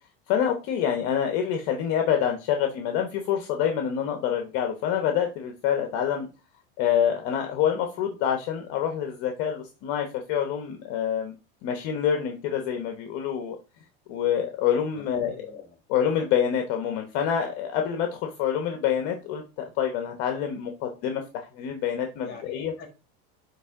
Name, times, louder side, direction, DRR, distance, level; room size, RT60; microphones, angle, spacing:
voice 1, 0.3-6.3 6.8-11.3 11.6-13.6 14.1-15.3 15.9-22.7, left 9 dB, 60° left, 4 dB, 1.1 m, -26 dB
voice 2, 14.9-15.8 22.2-22.9, left 4 dB, 35° left, 3 dB, 3.2 m, -44 dB
9.2 x 3.4 x 3.7 m, 0.31 s
supercardioid pair, 130°, 32 cm